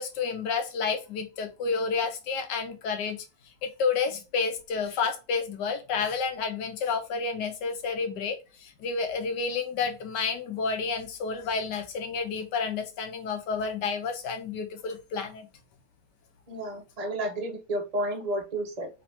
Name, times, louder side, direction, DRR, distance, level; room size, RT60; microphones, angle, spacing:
voice 1, 0.0-3.2 3.6-15.5, left 5 dB, 90° left, 6 dB, 1.4 m, -30 dB
voice 2, 16.5-18.9, right 1 dB, 55° right, 2 dB, 0.4 m, -31 dB
3.4 x 3.2 x 2.8 m, 0.29 s
omnidirectional pair, 1.8 m